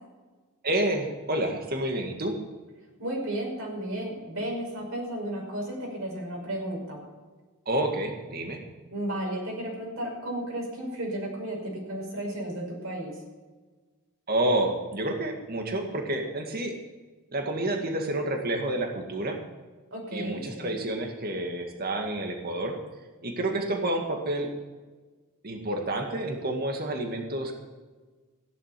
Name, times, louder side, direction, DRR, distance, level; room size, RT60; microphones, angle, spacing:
voice 1, 0.6-2.4 7.7-8.6 14.3-16.7 17.3-19.4 20.1-22.8 23.2-24.5 25.4-27.6, right 1 dB, 45° right, 4 dB, 2.0 m, -29 dB
voice 2, 3.0-7.0 8.9-13.2 19.9-20.8, right 1 dB, 65° right, -1 dB, 5.5 m, -33 dB
15.5 x 11.0 x 5.9 m, 1.3 s
head